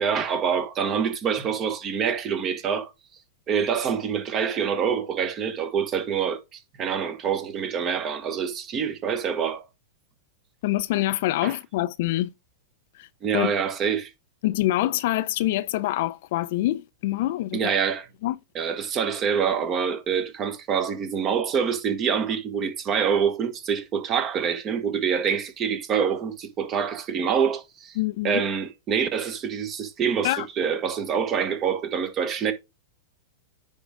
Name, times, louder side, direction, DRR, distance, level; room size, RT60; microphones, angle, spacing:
voice 1, 0.0-2.9 3.5-9.7 11.4-11.5 13.2-14.1 17.5-18.1 18.5-28.0 28.2-32.5, right 7 dB, 35° right, 1.4 m, -26 dB
voice 2, 10.6-12.3 13.0-13.1 13.3-13.5 14.4-17.6 18.2-18.4 28.0-28.4 30.2-30.5, left 16 dB, 60° left, 0.5 m, -25 dB
9.7 x 3.7 x 3.7 m
hypercardioid pair, 120°, 0 cm